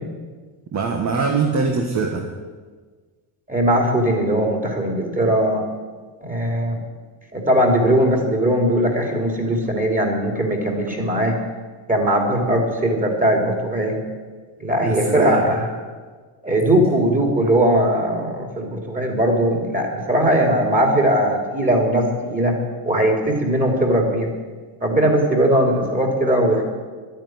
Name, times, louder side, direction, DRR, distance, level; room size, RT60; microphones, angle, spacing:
voice 1, 0.7-2.3 14.8-15.4, right 4 dB, 35° right, 2 dB, 1.7 m, -22 dB
voice 2, 3.5-5.6 6.2-6.8 7.3-11.4 11.9-14.0 14.6-15.7 16.4-22.5 22.8-24.3 24.8-26.6, right 1 dB, 15° right, 2 dB, 3.3 m, -19 dB
11.5 x 10.5 x 9.5 m, 1.4 s
cardioid pair, 125°, 49 cm